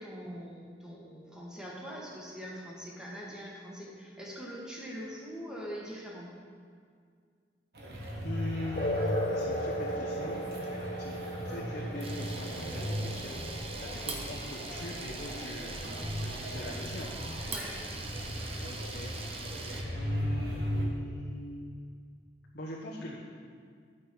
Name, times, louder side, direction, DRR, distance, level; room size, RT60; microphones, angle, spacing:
voice 1, 0.0-6.3 17.5-17.7, equal, 5° right, -4 dB, 1.7 m, -43 dB
sound 1, 7.7-20.9, equal, 65° right, 1.6 m, -37 dB
voice 2, 8.2-10.4 10.9-13.4 13.8-15.9 16.1-17.1 18.6-19.2 19.9-21.8 22.5-23.2, left 1 dB, 70° left, -6 dB, 1.2 m, -41 dB
sound 2, 8.8-15.8, equal, 50° left, 0.7 m, -36 dB
Camera, 12.0-19.8, right 3 dB, 35° right, 0.9 m, -42 dB
9.2 x 6.3 x 6.1 m, 2.1 s
head